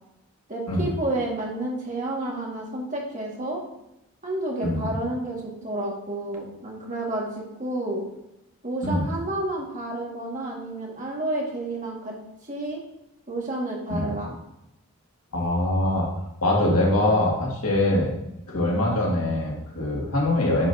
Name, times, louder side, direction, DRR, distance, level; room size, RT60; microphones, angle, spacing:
voice 1, 0.5-3.6 4.2-8.0 8.6-12.1 12.4-12.8 13.3-14.4, right 2 dB, 35° right, -2 dB, 1.9 m, -30 dB
voice 2, 15.3-16.1 16.4-18.1 18.5-20.7, left 1 dB, 85° left, -3 dB, 2.3 m, -23 dB
10.0 x 5.7 x 2.8 m, 0.88 s
head